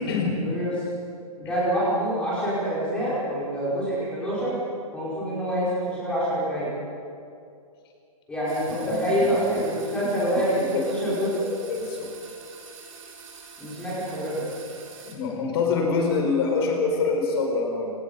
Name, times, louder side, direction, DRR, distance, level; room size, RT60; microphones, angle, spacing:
voice 1, 0.0-0.8 1.4-4.6 4.9-6.7 8.3-11.3 13.6-14.4, equal, 5° left, -9 dB, 5.0 m, -26 dB
sound 1, 8.5-15.1, right 5 dB, 60° right, 5.3 m, -45 dB
voice 2, 10.7-12.1 15.0-17.9, left 4 dB, 40° left, 1 dB, 4.9 m, -25 dB
26.5 x 19.0 x 5.4 m, 2.5 s
hypercardioid pair, 165°, 19 cm